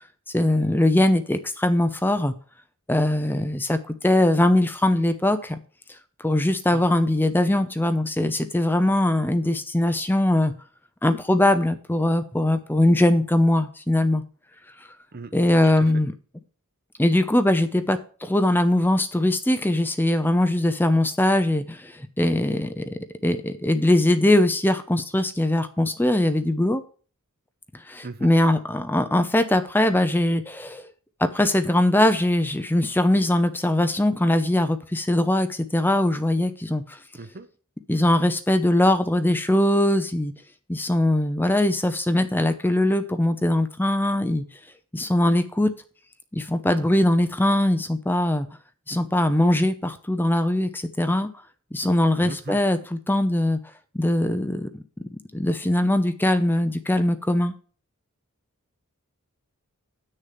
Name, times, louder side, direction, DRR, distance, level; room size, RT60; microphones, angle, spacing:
voice 1, 0.3-2.3 2.9-5.6 6.2-10.5 11.0-14.2 15.3-16.1 17.0-26.8 27.9-30.9 31.2-37.0 37.9-40.3 40.7-44.4 44.9-45.7 46.3-48.5 48.9-51.3 51.7-53.6 53.9-57.5, left 1 dB, 10° left, 9 dB, 0.6 m, -21 dB
voice 2, 15.1-15.9 28.0-28.3 37.1-37.5 52.2-52.6, right 3 dB, 45° right, 11 dB, 0.8 m, -38 dB
8.9 x 6.5 x 5.8 m, 0.40 s
head